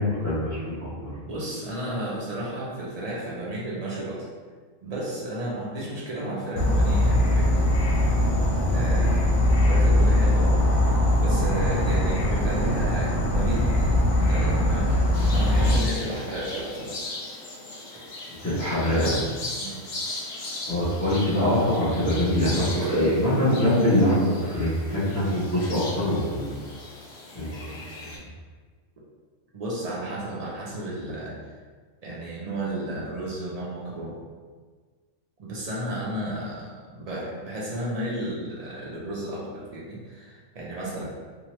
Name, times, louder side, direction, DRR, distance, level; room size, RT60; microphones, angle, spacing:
voice 1, 0.0-1.1 9.0-9.2 18.4-19.1 20.7-26.6 27.3-28.1, left 1 dB, 15° left, -13 dB, 0.6 m, -24 dB
voice 2, 1.2-4.3 4.8-7.6 8.7-14.0 14.3-17.0 19.6-19.8 22.8-23.2 29.5-31.5 32.0-34.1 35.4-41.0, right 1 dB, 75° right, -5 dB, 0.3 m, -33 dB
Insect / Frog, 6.6-15.8, left 1 dB, 85° left, 1.1 m, -21 dB
sound 1, 15.1-28.2, left 2 dB, 65° left, 0.4 m, -38 dB
2.9 x 2.2 x 2.9 m, 1.5 s
omnidirectional pair, 1.4 m